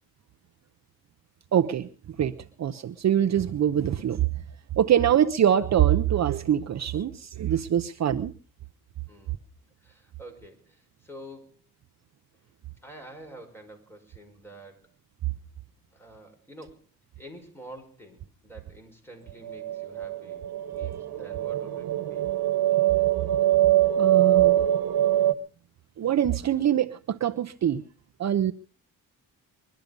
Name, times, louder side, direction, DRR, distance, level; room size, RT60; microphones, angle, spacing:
voice 1, 1.5-1.9 2.2-4.3 4.8-8.3 24.0-24.6 26.0-27.8 28.2-28.5, right 10 dB, 50° right, 9 dB, 0.7 m, -24 dB
voice 2, 9.8-11.6 12.8-14.9 15.9-16.8 17.2-20.4 20.7-22.2, right 1 dB, 5° left, 3 dB, 5.6 m, -47 dB
sound 1, 19.5-25.3, right 12 dB, 75° right, 1.4 m, -23 dB
22.0 x 12.0 x 5.3 m, 0.40 s
cardioid pair, 130°, 36 cm